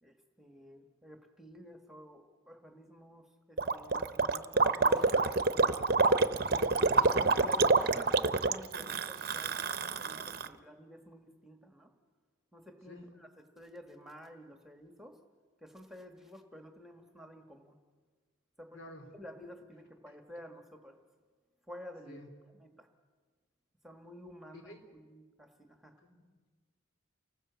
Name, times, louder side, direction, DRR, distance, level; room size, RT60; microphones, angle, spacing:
voice 1, 0.0-5.2 7.1-11.9 12.5-15.2 15.6-17.8 18.6-18.8 19.1-21.0 21.7-22.2 22.5-22.9 23.8-26.0, equal, ahead, 5 dB, 1.5 m, -51 dB
Gurgling, 3.6-10.5, right 3 dB, 50° right, 0.7 m, -27 dB
voice 2, 6.4-7.2 7.9-8.0 12.9-13.1 18.7-19.1 22.1-22.3 24.5-24.8 26.0-26.3, left 1 dB, 80° left, 4 dB, 4.0 m, -51 dB
28.5 x 19.5 x 8.1 m, 1.5 s
head